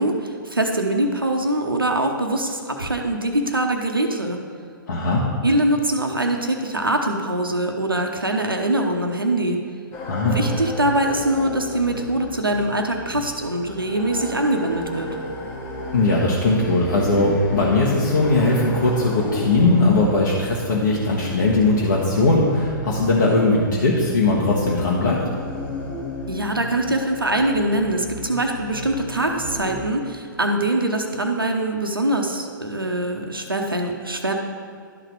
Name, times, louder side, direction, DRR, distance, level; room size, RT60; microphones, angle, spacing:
voice 1, 0.0-4.4 5.4-9.6 10.2-15.1 26.3-34.3, right 1 dB, 85° right, 3 dB, 0.8 m, -23 dB
voice 2, 4.9-5.2 10.1-10.4 15.9-25.2, left 2 dB, 60° left, -5 dB, 1.3 m, -19 dB
sound 1, 9.9-29.8, left 1 dB, 25° left, 1.1 m, -34 dB
12.0 x 4.0 x 4.6 m, 2.3 s
figure-of-eight pair, 115°, 11 cm